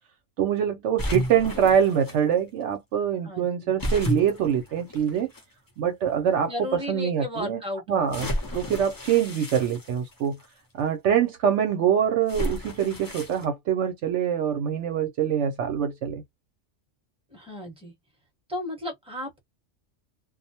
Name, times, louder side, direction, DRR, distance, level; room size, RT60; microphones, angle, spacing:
voice 1, 0.4-5.3 5.8-7.6 7.9-10.4 10.7-16.2, right 8 dB, 70° right, 0.8 m, -24 dB
sound 1, 1.0-2.2 3.8-5.4 6.2-6.3 8.1-10.5 12.3-13.5, left 1 dB, 25° left, 0.5 m, -32 dB
voice 2, 3.2-3.7 6.5-8.0 17.3-17.9 18.5-19.4, left 1 dB, 5° right, 1.0 m, -34 dB
2.3 x 2.1 x 2.7 m
omnidirectional pair, 1.3 m